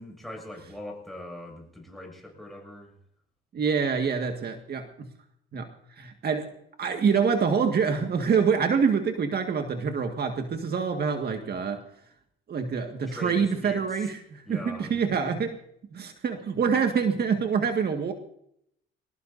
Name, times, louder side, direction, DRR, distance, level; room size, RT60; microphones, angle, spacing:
voice 1, 0.0-2.9 13.1-14.1 14.4-15.0, left 1 dB, ahead, 2 dB, 6.7 m, -41 dB
voice 2, 3.5-5.1 5.5-5.7 6.0-11.8 12.5-15.6 15.9-18.1, right 6 dB, 55° right, 5 dB, 1.9 m, -26 dB
23.5 x 19.0 x 2.7 m, 0.72 s
cardioid pair, 90°, 20 cm